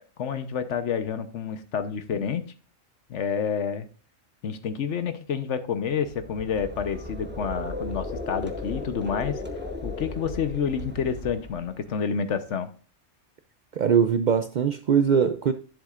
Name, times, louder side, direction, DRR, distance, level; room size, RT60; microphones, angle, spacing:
voice 1, 0.2-2.4 3.1-3.9 4.4-9.4 9.8-12.7, left 7 dB, 75° left, 1.2 m, -29 dB
sound 1, 6.0-11.9, equal, 10° right, 0.8 m, -39 dB
sound 2, 6.9-11.1, left 4 dB, 50° left, 1.2 m, -38 dB
voice 2, 13.8-15.5, right 7 dB, 65° right, 0.4 m, -21 dB
10.5 x 7.5 x 2.4 m
omnidirectional pair, 1.3 m